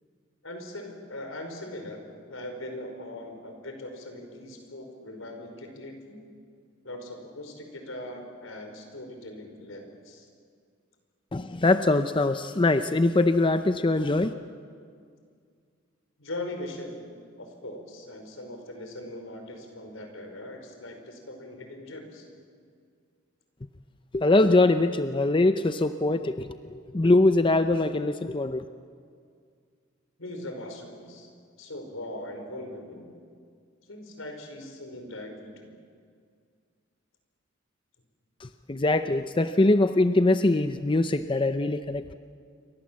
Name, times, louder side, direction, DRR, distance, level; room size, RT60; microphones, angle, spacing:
voice 1, 0.4-2.0 2.3-6.2 6.8-10.3 16.2-17.0 17.4-22.3 30.2-31.3 31.6-33.2 33.8-35.7, left 1 dB, 75° left, 4 dB, 5.1 m, -40 dB
voice 2, 11.3-14.3 24.1-28.7 38.4-42.1, left 2 dB, 25° left, 10 dB, 0.6 m, -23 dB
28.0 x 24.5 x 7.6 m, 2.2 s
head